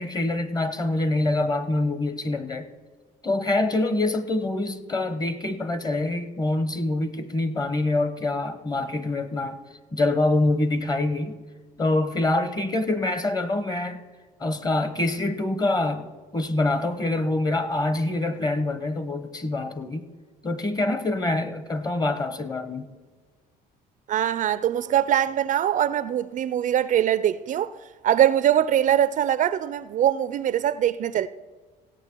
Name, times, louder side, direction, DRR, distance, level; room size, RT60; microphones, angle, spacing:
voice 1, 0.0-2.7 3.2-9.6 9.9-11.4 11.8-14.0 14.4-20.1 20.4-22.9, left 2 dB, 25° left, 0.9 m, -25 dB
voice 2, 24.1-27.7 28.0-31.3, right 10 dB, 50° right, 0.4 m, -22 dB
16.5 x 8.1 x 4.5 m
cardioid pair, 110°, 17 cm